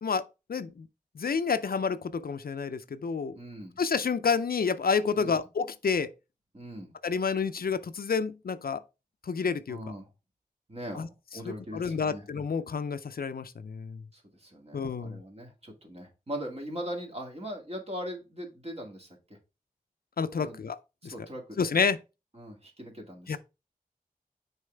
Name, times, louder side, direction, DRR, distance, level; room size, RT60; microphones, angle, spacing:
voice 1, 0.5-0.9 1.2-3.4 3.8-6.1 7.0-8.8 9.2-9.8 10.9-11.1 11.4-14.0 14.7-15.2 20.2-21.1 21.6-22.0 23.3-23.4, left 5 dB, 75° left, 0.5 m, -29 dB
voice 2, 3.3-3.8 5.2-5.3 6.5-6.9 9.7-10.1 10.7-11.1 11.3-12.2 14.4-19.1 20.4-20.6 21.0-21.4 22.4-23.4, equal, 40° right, 1.9 m, -40 dB
6.4 x 4.6 x 3.3 m
wide cardioid pair, 60°, 15 cm